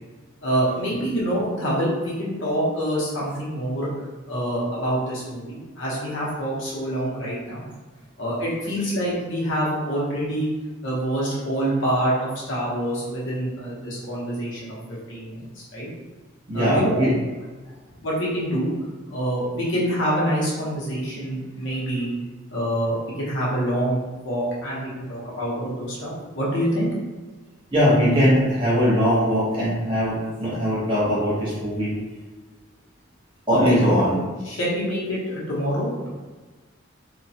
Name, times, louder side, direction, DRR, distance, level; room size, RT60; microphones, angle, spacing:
voice 1, 0.4-3.9 4.3-7.6 8.2-10.5 10.8-14.8 15.1-15.9 16.5-17.1 18.0-18.7 19.1-22.1 22.5-24.0 24.2-26.9 33.5-34.0 34.4-36.1, equal, 70° left, -6 dB, 0.9 m, -26 dB
voice 2, 16.5-17.1 27.7-31.9 33.5-34.1, equal, 25° right, -9 dB, 1.0 m, -20 dB
2.9 x 2.3 x 2.7 m, 1.3 s
head